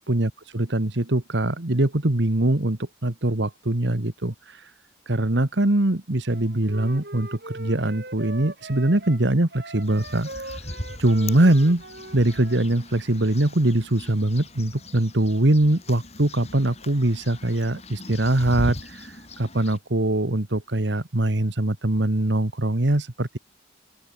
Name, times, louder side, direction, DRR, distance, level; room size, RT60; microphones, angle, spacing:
voice 1, 0.1-4.7 5.1-10.7 11.0-11.8 12.1-23.4, right 1 dB, 70° right, 1.8 m, -22 dB
Wind instrument woodwind instrument, 6.3-12.7, right 2 dB, 55° right, 7.6 m, -40 dB
sound 1, 9.8-19.8, left 1 dB, 35° left, 6.4 m, -39 dB
open air
head